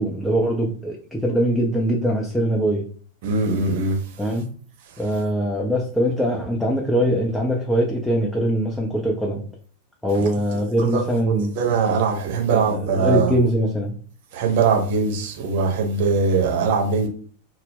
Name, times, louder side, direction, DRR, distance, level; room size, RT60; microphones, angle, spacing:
voice 1, 0.0-2.8 4.2-4.5 5.0-9.4 10.0-11.5 12.5-13.9, equal, 5° left, -1 dB, 0.4 m, -22 dB
voice 2, 3.2-4.0 10.1-10.2 10.8-13.3 14.3-17.1, right 4 dB, 50° right, 2 dB, 0.7 m, -21 dB
2.0 x 2.0 x 3.3 m, 0.44 s
figure-of-eight pair, 90°, 0 cm